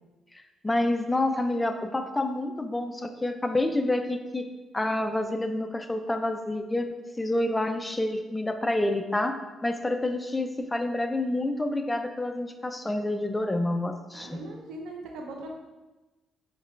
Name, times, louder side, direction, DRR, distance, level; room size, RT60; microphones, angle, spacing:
voice 1, 0.6-4.5 4.7-6.9 7.2-14.4, left 1 dB, 15° left, 7 dB, 0.4 m, -28 dB
voice 2, 14.1-15.5, right 2 dB, 85° right, 1 dB, 0.6 m, -40 dB
5.0 x 3.0 x 3.1 m, 1.1 s
cardioid pair, 90°, 0 cm